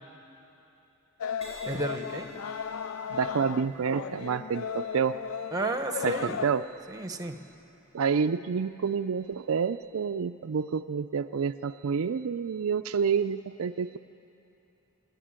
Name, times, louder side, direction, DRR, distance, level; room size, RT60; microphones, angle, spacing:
sound 1, 1.2-6.5, left 7 dB, 70° left, 0.4 m, -36 dB
Crash cymbal, 1.4-9.0 9.7-10.0, right 1 dB, 30° left, 6.4 m, -52 dB
voice 1, 1.7-2.3 5.5-6.4 6.9-7.4, right 2 dB, 15° right, 7 dB, 1.1 m, -32 dB
voice 2, 3.1-5.2 6.0-6.7 7.9-14.0, right 6 dB, 70° right, 9 dB, 0.4 m, -28 dB
28.5 x 10.5 x 8.9 m, 2.9 s
head